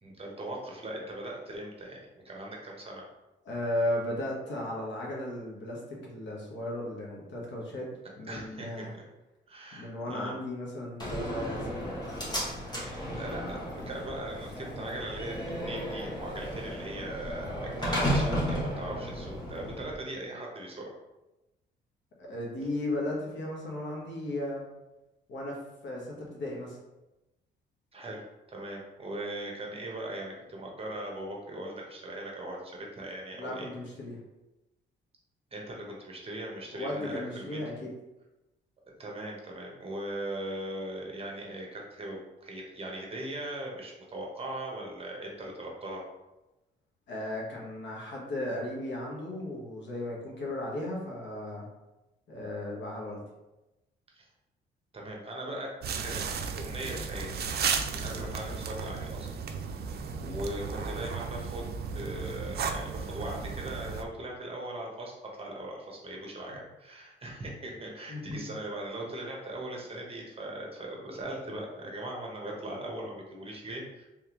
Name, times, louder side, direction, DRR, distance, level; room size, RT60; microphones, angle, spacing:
voice 1, 0.0-3.1 8.3-9.0 9.5-10.3 12.6-20.9 27.9-28.2 28.5-33.7 35.5-37.6 39.0-46.0 54.1-54.2 54.9-55.7 56.0-56.2 56.5-57.4 57.9-59.3 60.3-74.1, right 1 dB, 30° right, -1 dB, 1.1 m, -39 dB
voice 2, 3.4-7.9 8.2-9.0 9.8-11.9 22.2-24.6 25.3-26.8 33.3-34.2 36.7-37.9 47.1-51.7 52.3-53.2 58.1-58.2 60.1-60.4 66.5-66.6 68.1-68.4, left 1 dB, 65° left, -3 dB, 1.3 m, -35 dB
Slam, 11.0-20.0, equal, 20° left, 1.4 m, -34 dB
sound 1, 55.8-64.0, right 6 dB, 55° right, 0.5 m, -34 dB
3.5 x 3.4 x 3.0 m, 0.98 s
cardioid pair, 90°, 20 cm